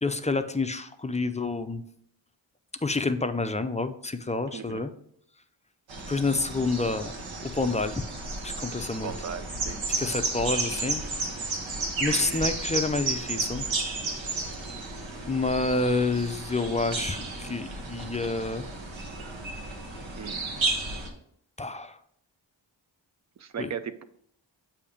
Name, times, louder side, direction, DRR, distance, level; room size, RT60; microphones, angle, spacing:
voice 1, 0.0-1.8 2.8-4.9 6.1-7.1 7.4-8.0 8.4-9.1 9.9-11.0 12.0-13.6 15.2-18.7 21.6-22.0 23.6-23.7, left 3 dB, 15° left, 9 dB, 0.4 m, -28 dB
voice 2, 4.5-4.9 9.0-9.8 20.2-20.4 23.4-24.0, right 7 dB, 40° right, 12 dB, 0.5 m, -37 dB
sound 1, 5.9-21.1, right 3 dB, 80° right, 1.1 m, -33 dB
8.4 x 2.8 x 5.0 m, 0.69 s
wide cardioid pair, 75°, 45 cm